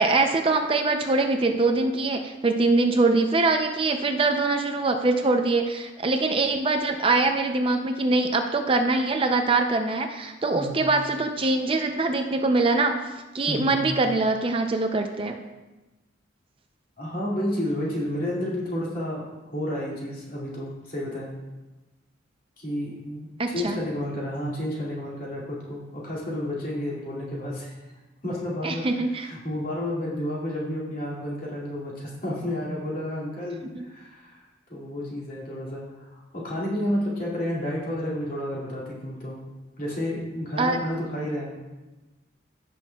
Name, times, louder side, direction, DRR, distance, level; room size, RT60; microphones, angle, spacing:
voice 1, 0.0-12.9 13.3-15.4 23.4-23.8 28.6-29.3 33.7-33.8 40.6-40.8, right 3 dB, 25° right, 5 dB, 0.5 m, -23 dB
voice 2, 13.5-14.0 17.0-21.3 22.6-23.3 23.5-27.7 28.2-28.8 29.2-34.4 34.7-39.4 39.8-41.5, left 1 dB, 45° left, -5 dB, 2.4 m, -31 dB
16.0 x 6.2 x 2.3 m, 1.1 s
head